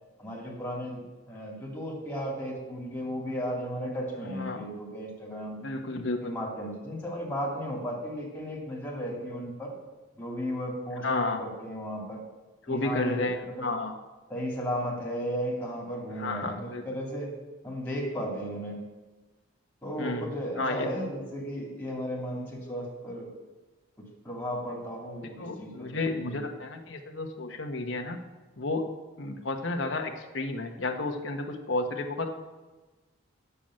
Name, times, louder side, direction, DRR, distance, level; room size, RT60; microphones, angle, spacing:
voice 1, 0.2-5.6 6.2-9.7 10.1-11.1 11.4-12.2 12.7-13.7 14.3-17.3 17.6-18.8 19.8-23.3 24.0-26.4, equal, 10° left, -4 dB, 2.5 m, -35 dB
voice 2, 4.2-4.6 5.6-6.4 11.0-11.4 12.6-13.9 16.1-16.8 20.0-20.3 20.6-20.9 25.4-28.2 28.6-28.9 29.2-32.3, left 2 dB, 65° left, 4 dB, 1.1 m, -32 dB
8.8 x 6.9 x 7.6 m, 1.2 s
head